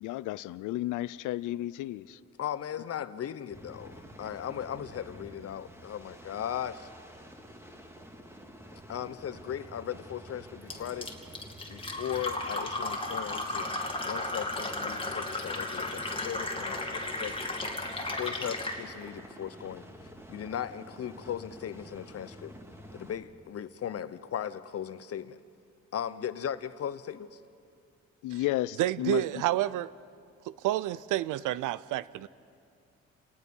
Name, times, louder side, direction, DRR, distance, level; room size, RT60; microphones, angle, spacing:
voice 1, 0.0-2.2 28.2-29.2, left 16 dB, 85° left, 19 dB, 0.5 m, -32 dB
voice 2, 2.4-6.9 8.9-11.3 11.7-13.7 14.0-17.5 18.1-19.8 20.3-22.5 22.9-25.4 25.9-27.4, left 9 dB, 50° left, 14 dB, 0.9 m, -37 dB
sound 1, 3.5-23.2, equal, 10° right, 2.0 m, -49 dB
Fill (with liquid), 10.7-18.8, left 2 dB, 15° left, 2.3 m, -34 dB
voice 3, 28.8-29.9 30.5-32.3, right 14 dB, 85° right, 19 dB, 0.6 m, -29 dB
30.0 x 18.0 x 5.5 m, 2.5 s
cardioid pair, 90°, 30 cm